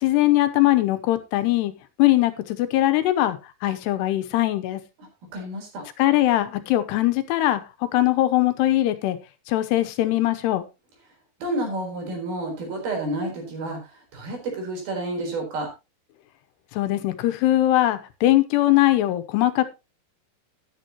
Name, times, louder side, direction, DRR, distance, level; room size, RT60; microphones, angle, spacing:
voice 1, 0.0-1.7 2.0-3.4 3.6-4.8 6.0-7.6 7.9-9.2 9.5-10.6 16.8-19.7, left 15 dB, 90° left, 10 dB, 3.1 m, -21 dB
voice 2, 5.3-5.9 11.4-13.8 14.1-15.7, right 2 dB, 65° right, 2 dB, 5.9 m, -30 dB
12.5 x 11.0 x 3.0 m, 0.26 s
omnidirectional pair, 4.7 m